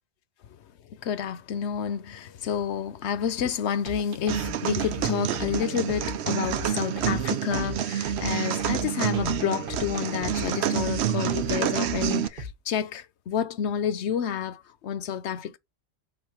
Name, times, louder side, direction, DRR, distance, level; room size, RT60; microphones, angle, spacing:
voice 1, 1.0-15.6, left 8 dB, 70° left, 1.0 m, -29 dB
sound 1, 3.9-12.5, left 1 dB, 50° right, 1.2 m, -38 dB
sound 2, 4.3-12.3, right 10 dB, 70° right, 0.9 m, -28 dB
5.2 x 3.9 x 5.8 m
omnidirectional pair, 1.2 m